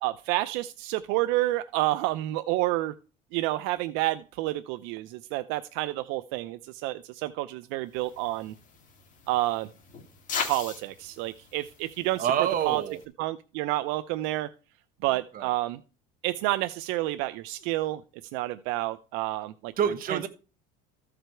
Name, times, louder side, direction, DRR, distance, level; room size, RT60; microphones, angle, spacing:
voice 1, 0.0-2.9 3.3-8.5 9.3-9.7 10.4-12.3 12.6-12.8 13.2-14.5 15.0-15.8 16.2-18.0 18.3-19.7 20.1-20.3, right 17 dB, 75° right, 0.6 m, -29 dB
sound 1, 7.9-13.1, left 6 dB, 40° left, 2.1 m, -40 dB
voice 2, 12.2-13.0 15.1-15.5 19.8-20.3, right 9 dB, 45° right, 1.4 m, -27 dB
14.5 x 5.1 x 4.5 m
cardioid pair, 125°, 20 cm